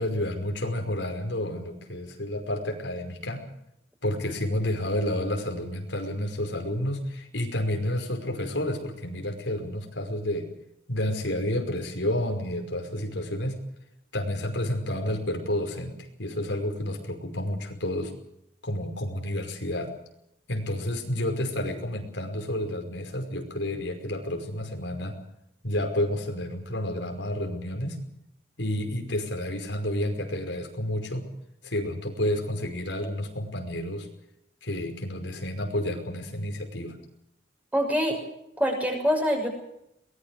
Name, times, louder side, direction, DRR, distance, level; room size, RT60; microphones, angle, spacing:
voice 1, 0.0-3.5 4.0-10.5 10.9-13.6 14.1-18.1 18.6-19.9 20.5-25.2 25.6-28.0 28.6-31.3 31.6-34.1 34.6-37.0, left 1 dB, 85° left, 4 dB, 5.3 m, -30 dB
voice 2, 37.7-38.2 38.6-39.5, equal, 10° right, 2 dB, 6.5 m, -24 dB
23.0 x 20.0 x 6.5 m, 0.81 s
head